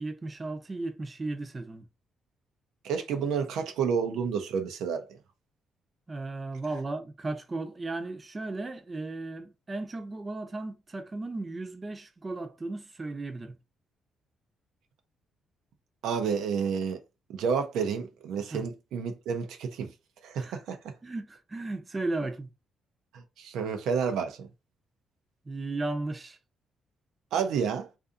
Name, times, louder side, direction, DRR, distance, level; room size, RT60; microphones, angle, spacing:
voice 1, 0.0-1.9 6.1-13.5 18.5-18.6 20.4-20.6 21.0-22.5 25.5-26.4, right 2 dB, 25° right, 0.5 m, -35 dB
voice 2, 2.8-5.0 16.0-17.0 17.3-19.9 20.2-20.8 23.4-24.5 27.3-27.9, right 6 dB, 85° right, 0.5 m, -30 dB
2.5 x 2.4 x 2.4 m
cardioid pair, 90°, 0 cm